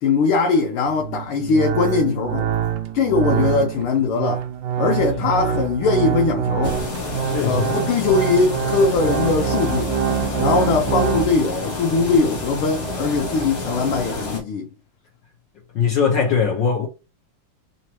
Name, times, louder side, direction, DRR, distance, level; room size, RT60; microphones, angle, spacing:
voice 1, 0.0-2.5 2.9-4.4 4.8-6.8 7.4-9.9 10.4-14.7, left 4 dB, 85° left, 1.6 m, -20 dB
sound 1, 0.9-11.3, right 8 dB, 75° right, 1.2 m, -25 dB
sound 2, 6.6-14.4, left 2 dB, 40° left, 0.9 m, -29 dB
voice 2, 7.3-7.7 15.7-16.9, left 6 dB, 65° left, 1.4 m, -20 dB
4.0 x 2.9 x 3.0 m
omnidirectional pair, 2.4 m